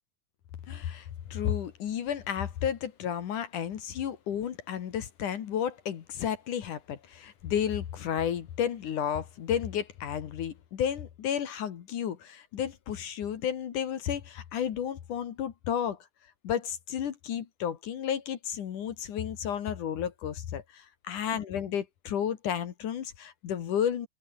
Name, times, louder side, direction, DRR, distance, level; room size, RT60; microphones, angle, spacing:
voice 1, 0.7-16.0 16.4-24.1, left 9 dB, 60° left, 3.0 m, -32 dB
omnidirectional pair, 4.2 m